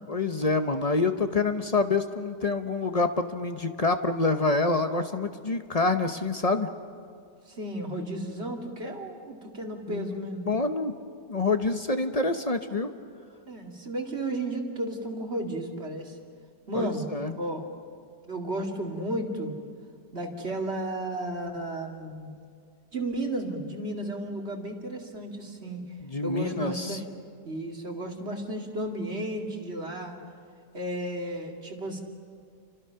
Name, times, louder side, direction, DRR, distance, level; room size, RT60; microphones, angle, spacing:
voice 1, 0.1-6.7 9.9-10.9 11.3-12.9 16.7-17.3 26.0-27.0, left 3 dB, 35° left, 8 dB, 0.7 m, -27 dB
voice 2, 7.5-10.5 13.5-16.2 16.7-17.1 17.3-17.7 18.3-19.5 20.1-22.3 22.9-25.8 26.2-27.1 27.4-30.2 30.7-32.0, right 1 dB, 40° right, 1 dB, 2.5 m, -33 dB
29.0 x 25.5 x 5.7 m, 2.2 s
omnidirectional pair, 1.8 m